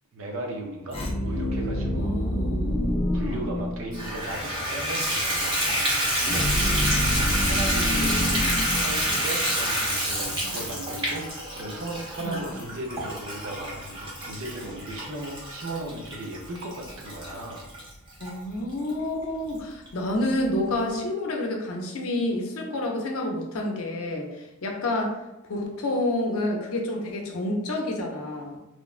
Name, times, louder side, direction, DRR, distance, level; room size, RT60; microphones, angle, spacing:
voice 1, 0.1-2.2 3.1-6.9 7.4-17.7, right 1 dB, 70° right, 2 dB, 0.5 m, -37 dB
sound 1, 0.9-4.2 6.2-9.5, left 1 dB, 25° left, 0.4 m, -27 dB
voice 2, 1.9-3.4 6.5-7.1 10.4-10.6 12.2-12.4 18.2-25.2 25.5-28.6, left 1 dB, 75° left, 1 dB, 0.5 m, -29 dB
Water tap faucet / Bathtub (filling or washing), 3.9-18.3 18.9-19.0 19.5-19.6 19.9-20.0, equal, 20° right, 0.6 m, -28 dB
3.1 x 2.1 x 2.4 m, 0.96 s
head